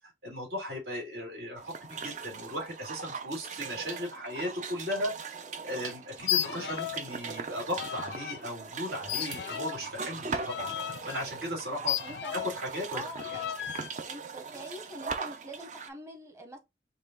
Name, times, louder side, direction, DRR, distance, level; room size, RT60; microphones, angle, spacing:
voice 1, 0.2-10.7 11.0-11.9 12.3-13.0, left 1 dB, 65° right, 2.1 m, -36 dB
sound 1, 1.6-15.9, right 5 dB, 45° right, 0.5 m, -40 dB
sound 2, 6.2-7.1 7.3-8.4 9.1-12.7 13.2-13.9, left 12 dB, 75° left, 0.4 m, -35 dB
voice 2, 12.0-12.3 12.9-13.6 14.1-16.6, equal, 15° right, 1.1 m, -44 dB
5.4 x 2.3 x 3.8 m
head